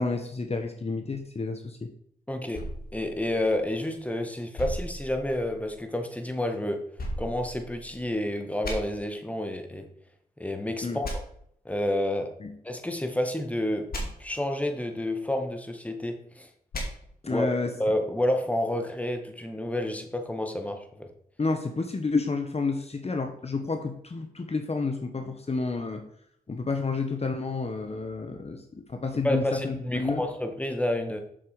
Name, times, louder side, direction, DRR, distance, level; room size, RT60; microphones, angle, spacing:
voice 1, 0.0-1.9 10.8-11.0 12.4-12.5 17.2-17.7 21.4-26.0 26.5-30.2, left 3 dB, 40° left, 6 dB, 1.1 m, -30 dB
voice 2, 2.3-2.6 2.9-6.8 7.2-9.9 10.4-11.2 11.6-12.3 12.6-16.5 17.3-17.5 17.8-21.1 29.2-31.2, left 1 dB, 10° left, 5 dB, 1.7 m, -29 dB
sound 1, 2.5-4.0 4.6-5.8 7.0-8.1 8.6-8.7 11.0-11.1 13.9-14.0 16.7-16.9, equal, 70° left, 2.5 m, -36 dB
7.5 x 6.7 x 5.1 m, 0.69 s
cardioid pair, 55°, 16 cm